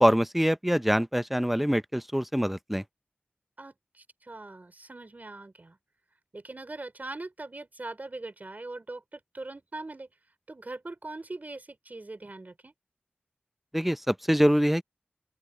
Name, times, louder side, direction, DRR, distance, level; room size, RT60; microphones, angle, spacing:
voice 1, 0.0-2.8 13.7-14.8, equal, 5° right, 0.6 m, -24 dB
voice 2, 3.6-5.8 6.3-10.1 10.5-12.7, right 2 dB, 45° right, 5.6 m, -41 dB
open air
wide cardioid pair, 50°, 4 cm